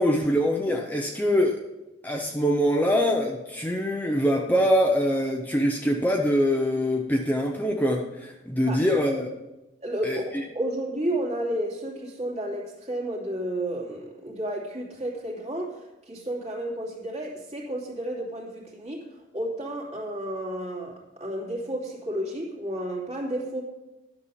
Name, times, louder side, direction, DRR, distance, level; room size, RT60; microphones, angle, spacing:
voice 1, 0.0-1.6 2.0-9.3 10.0-10.4, equal, 10° left, 1 dB, 0.7 m, -24 dB
voice 2, 9.8-15.8 16.1-19.0 19.3-23.6, right 1 dB, 35° right, -2 dB, 2.6 m, -32 dB
11.0 x 6.8 x 5.6 m, 0.97 s
head